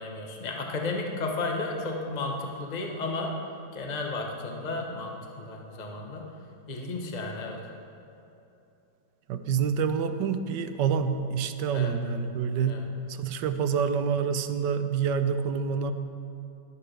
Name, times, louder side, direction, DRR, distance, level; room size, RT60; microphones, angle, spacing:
voice 1, 0.0-3.3 3.7-6.3 6.7-7.6 11.7-11.9 12.6-12.8, left 3 dB, 30° left, 0 dB, 1.0 m, -33 dB
voice 2, 9.3-15.9, right 6 dB, 85° right, 9 dB, 1.3 m, -27 dB
21.0 x 8.4 x 3.4 m, 2.8 s
omnidirectional pair, 1.8 m